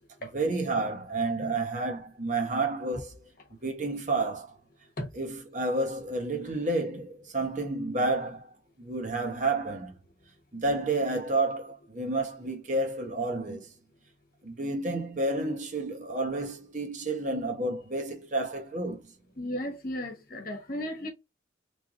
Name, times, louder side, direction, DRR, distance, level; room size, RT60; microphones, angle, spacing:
voice 1, 0.3-3.2 3.6-4.6 5.1-8.5 8.8-9.9 10.5-13.7 14.4-19.0, right 2 dB, 40° right, 1.0 m, -30 dB
voice 2, 19.4-21.1, left 1 dB, 50° left, 1.1 m, -34 dB
3.2 x 2.6 x 3.7 m
head